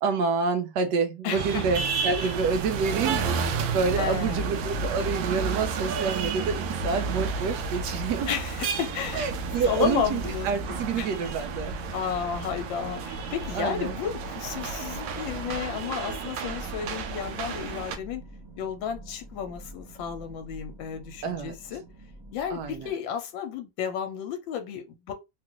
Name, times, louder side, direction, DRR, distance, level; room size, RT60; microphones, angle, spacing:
voice 1, 0.0-8.3 9.1-11.8 13.5-13.9 21.2-21.6 22.5-22.9, right 5 dB, 70° right, 1.1 m, -28 dB
voice 2, 1.2-1.6 4.0-4.5 8.3-9.3 9.6-11.1 11.9-18.2 18.6-21.8 22.3-25.1, left 8 dB, 75° left, 1.4 m, -32 dB
sound 1, 1.3-18.0, right 5 dB, 90° right, 1.4 m, -31 dB
sound 2, 9.0-22.9, right 3 dB, 25° right, 0.4 m, -46 dB
3.8 x 2.4 x 2.9 m
omnidirectional pair, 2.1 m